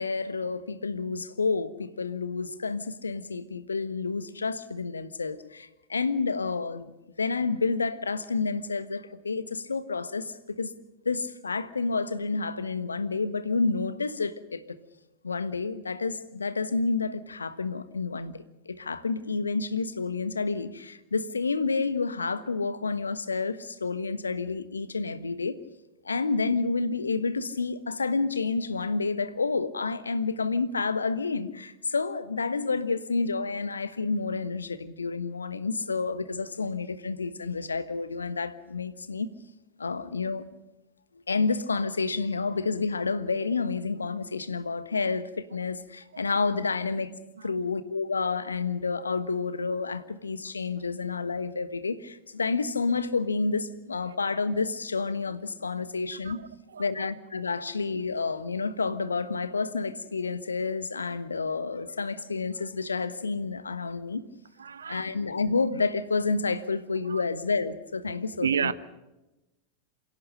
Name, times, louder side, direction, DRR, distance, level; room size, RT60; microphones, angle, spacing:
voice 1, 0.0-10.7 11.0-14.8 15.2-25.6 26.0-39.3 39.8-40.4 41.3-47.1 47.4-56.4 56.8-64.2 64.8-68.7, left 4 dB, 75° left, 1.3 m, -29 dB
voice 2, 56.7-57.1 64.6-65.1 67.1-67.2 68.4-68.7, right 7 dB, 70° right, 1.1 m, -31 dB
27.5 x 17.0 x 6.5 m
figure-of-eight pair, 90°, 0 cm